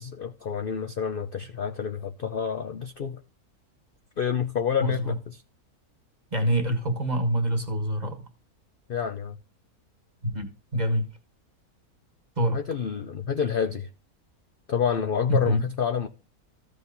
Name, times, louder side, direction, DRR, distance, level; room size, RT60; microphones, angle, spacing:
voice 1, 0.0-3.2 4.2-5.4 8.9-9.4 12.5-13.9 14.7-16.1, left 7 dB, 50° left, 0.7 m, -28 dB
voice 2, 4.8-5.1 6.3-8.3 10.2-11.1 12.4-12.6 15.3-15.6, equal, 30° right, 1.6 m, -26 dB
14.5 x 5.1 x 3.9 m
omnidirectional pair, 1.6 m